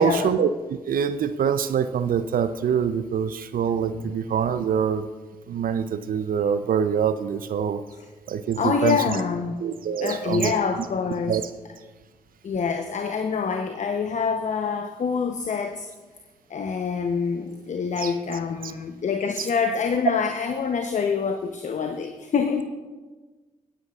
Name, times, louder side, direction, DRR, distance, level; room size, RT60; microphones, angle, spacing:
voice 1, 0.0-5.1 5.5-7.8 8.3-9.2 9.6-10.5 11.3-11.4 18.0-18.1 19.4-19.5, right 7 dB, 55° right, 12 dB, 0.6 m, -25 dB
voice 2, 8.6-9.5 10.0-11.4 12.4-15.9 16.5-22.6, left 5 dB, 45° left, 6 dB, 0.8 m, -26 dB
20.0 x 9.5 x 2.4 m, 1.3 s
hypercardioid pair, 40°, 17 cm